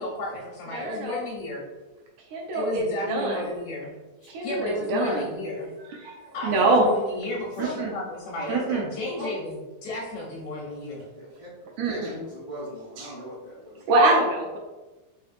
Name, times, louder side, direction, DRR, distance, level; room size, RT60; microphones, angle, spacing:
voice 1, 0.0-1.6 2.5-4.0 4.4-5.7 6.3-11.1, left 1 dB, 80° left, -2 dB, 1.6 m, -33 dB
voice 2, 0.7-1.2 2.3-3.4 4.3-5.3 6.0-6.1 6.4-6.9 7.6-8.0 8.5-8.9 11.8-12.2 13.0-13.1 13.9-14.6, right 2 dB, 80° right, 0 dB, 1.8 m, -24 dB
voice 3, 8.9-9.3 11.1-11.5 11.8-13.8, equal, 50° right, -7 dB, 1.4 m, -38 dB
5.2 x 2.8 x 2.4 m, 1.2 s
omnidirectional pair, 3.4 m